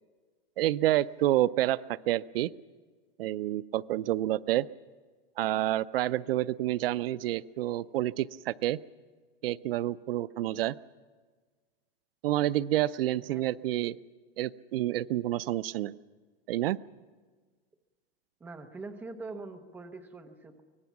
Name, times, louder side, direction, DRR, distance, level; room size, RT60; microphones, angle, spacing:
voice 1, 0.6-2.5 3.2-4.7 5.4-8.8 9.4-10.8 12.2-14.0 14.4-16.0 16.5-16.8, right 14 dB, 75° right, 18 dB, 0.5 m, -28 dB
voice 2, 18.4-20.6, right 3 dB, 5° right, 5 dB, 0.8 m, -43 dB
24.5 x 19.0 x 7.2 m, 1.5 s
supercardioid pair, 180°, 29 cm